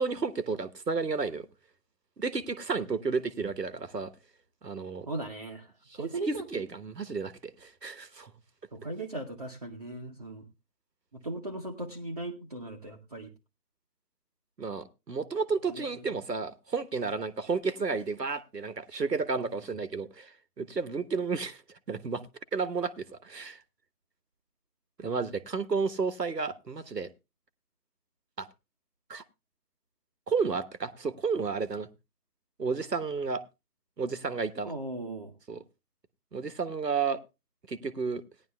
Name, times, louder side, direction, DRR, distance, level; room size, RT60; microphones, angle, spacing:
voice 1, 0.0-1.5 2.2-4.1 4.6-5.1 6.0-8.3 14.6-20.3 20.6-21.6 21.9-22.2 22.5-23.6 25.0-27.1 28.4-28.5 29.1-29.2 30.3-31.9 32.6-33.4 34.0-34.7 35.5-35.6 36.3-37.2 37.7-38.2, right 4 dB, 85° right, 14 dB, 1.4 m, -32 dB
voice 2, 5.1-6.6 8.7-10.4 11.1-13.3 15.8-15.9 34.6-35.3, right 2 dB, 25° right, 0 dB, 0.9 m, -38 dB
18.0 x 10.5 x 2.3 m, 0.26 s
figure-of-eight pair, 155°, 47 cm